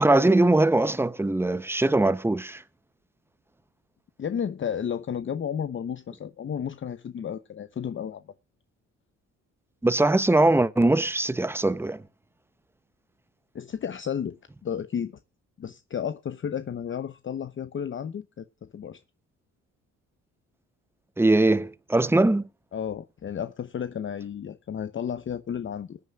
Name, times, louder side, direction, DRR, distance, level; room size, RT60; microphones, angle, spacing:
voice 1, 0.0-2.6 9.8-12.0 21.2-22.5, right 2 dB, 10° right, 0.7 m, -21 dB
voice 2, 4.2-8.2 13.5-15.2 15.6-19.0 22.7-26.0, left 8 dB, 40° left, 0.8 m, -32 dB
21.0 x 9.5 x 2.4 m
cardioid pair, 90°, 30 cm